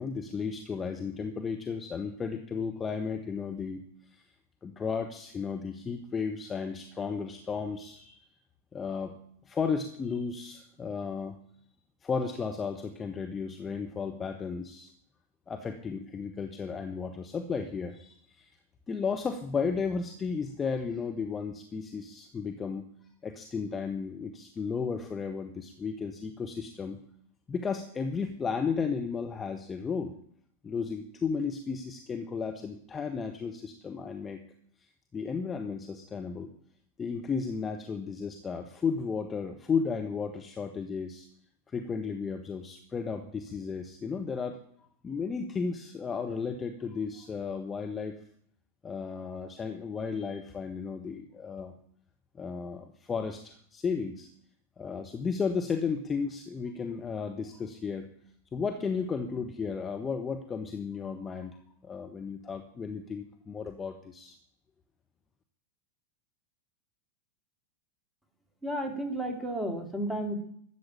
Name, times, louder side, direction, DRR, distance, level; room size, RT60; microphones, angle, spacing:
voice 1, 0.0-3.8 4.1-4.2 4.6-8.2 8.7-9.1 9.5-11.4 12.0-14.9 15.5-18.5 18.9-22.8 23.2-27.0 27.5-30.1 30.6-34.4 35.1-36.5 37.0-41.3 41.7-44.6 45.0-48.2 48.8-51.7 52.4-54.3 54.8-58.1 58.5-61.6 61.8-64.4, left 5 dB, 20° left, 4 dB, 1.3 m, -34 dB
voice 2, 68.6-70.4, right 1 dB, 5° right, 4 dB, 3.0 m, -32 dB
13.0 x 8.3 x 8.7 m, 0.63 s
figure-of-eight pair, 90°, 0 cm